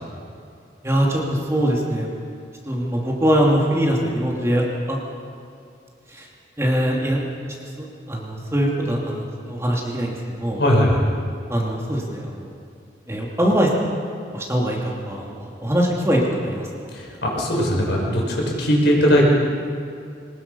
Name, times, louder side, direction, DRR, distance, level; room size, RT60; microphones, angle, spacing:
voice 1, 0.8-2.1 2.7-5.0 6.1-6.3 6.6-7.3 7.8-10.6 11.5-12.5 13.1-13.7 14.3-16.7, equal, 15° right, -2 dB, 2.7 m, -22 dB
voice 2, 10.6-11.1 16.9-19.3, equal, 70° left, -2 dB, 5.7 m, -19 dB
24.0 x 20.0 x 5.6 m, 2.5 s
head